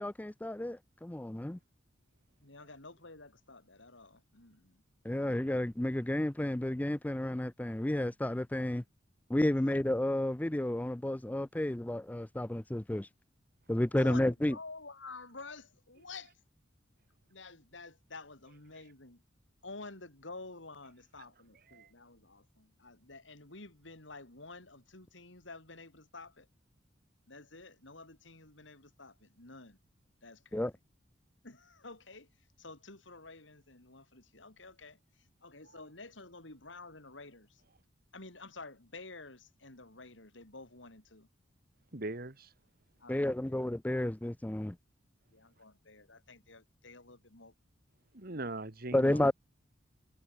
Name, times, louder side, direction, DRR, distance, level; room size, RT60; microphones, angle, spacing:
voice 1, 0.0-1.6 5.0-8.8 9.3-13.1 13.7-14.6 30.5-30.7 43.1-44.8 48.9-49.3, left 1 dB, 10° left, 0.4 m, -31 dB
voice 2, 2.4-4.8 9.7-9.8 14.0-14.2 14.5-16.3 17.3-19.2 19.6-26.5 27.3-29.8 30.2-30.7 31.4-32.3 32.6-35.0 35.4-37.6 38.1-41.3 43.0-43.5 45.3-47.5, left 3 dB, 75° left, 4.1 m, -50 dB
voice 3, 41.9-42.5 48.1-49.3, right 2 dB, 50° right, 2.0 m, -41 dB
head